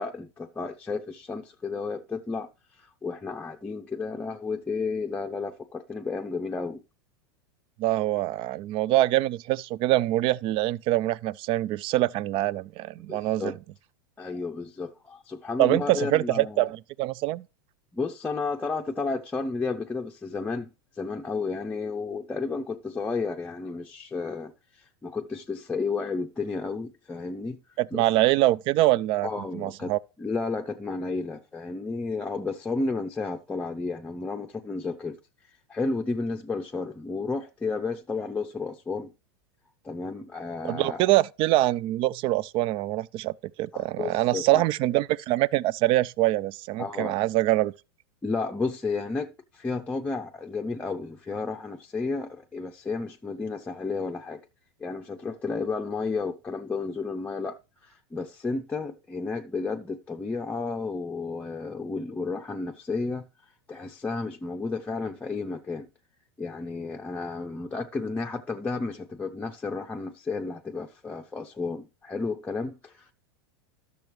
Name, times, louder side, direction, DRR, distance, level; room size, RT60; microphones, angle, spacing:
voice 1, 0.0-2.5 2.8-6.8 13.1-13.6 14.2-16.7 17.9-27.6 27.9-28.0 29.2-29.9 30.2-35.2 35.7-39.1 39.8-41.0 43.7-44.6 46.8-47.2 48.2-54.4 54.8-63.3 63.7-65.9 66.4-73.1, left 4 dB, 10° left, 0.6 m, -32 dB
voice 2, 7.8-13.5 15.6-17.4 27.8-30.0 40.6-47.7, right 16 dB, 40° right, 0.4 m, -24 dB
12.0 x 6.8 x 3.1 m
supercardioid pair, 125°, 13 cm